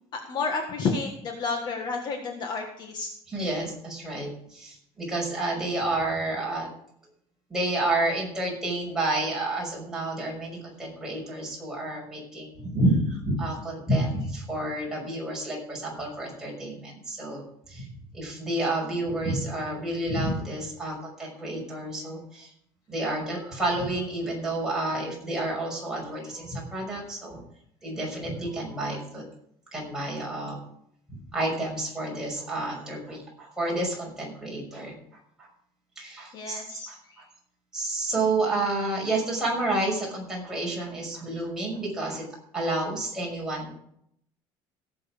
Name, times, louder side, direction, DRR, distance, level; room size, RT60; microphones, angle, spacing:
voice 1, 0.1-3.1 36.3-37.2, left 4 dB, 40° left, 3 dB, 1.6 m, -31 dB
voice 2, 3.3-6.7 7.5-17.9 18.1-22.5 22.9-27.4 27.8-29.2 29.7-30.6 31.3-34.9 35.4-35.5 36.0-37.2 37.7-42.2 42.5-43.7, right 2 dB, 5° right, -4 dB, 6.0 m, -30 dB
17.0 x 7.7 x 5.1 m, 0.70 s
cardioid pair, 160°, 11 cm